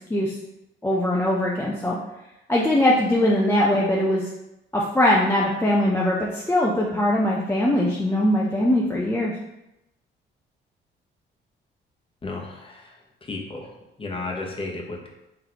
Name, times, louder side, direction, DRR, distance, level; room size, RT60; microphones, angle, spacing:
voice 1, 0.8-2.0 2.5-4.2 4.7-9.3, left 1 dB, 10° left, -4 dB, 0.5 m, -21 dB
voice 2, 12.2-13.0 13.3-15.1, left 3 dB, 25° left, -1 dB, 0.9 m, -33 dB
4.0 x 3.2 x 2.9 m, 0.89 s
cardioid pair, 90°, 20 cm